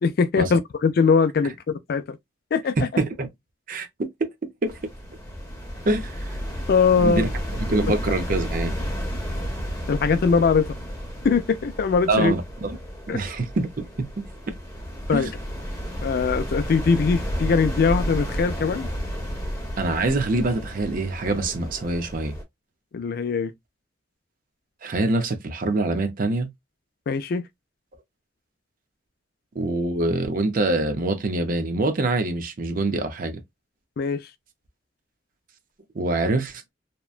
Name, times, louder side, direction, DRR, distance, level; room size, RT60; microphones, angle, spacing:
voice 1, 0.0-2.2 2.5-2.9 6.7-7.3 7.9-8.0 9.9-10.7 11.2-12.3 13.1-13.2 15.1-15.3 16.0-18.9 22.9-23.5 27.1-27.4 34.0-34.2, left 5 dB, 55° left, 0.4 m, -21 dB
voice 2, 2.8-3.3 3.7-4.8 5.9-6.4 7.0-7.3 7.7-8.7 12.1-12.8 13.1-14.3 15.1-15.3 19.8-22.4 24.8-26.5 29.6-33.4 35.9-36.7, right 2 dB, 50° right, 0.6 m, -25 dB
sound 1, 4.7-22.4, equal, 20° left, 1.1 m, -32 dB
2.9 x 2.1 x 2.4 m
head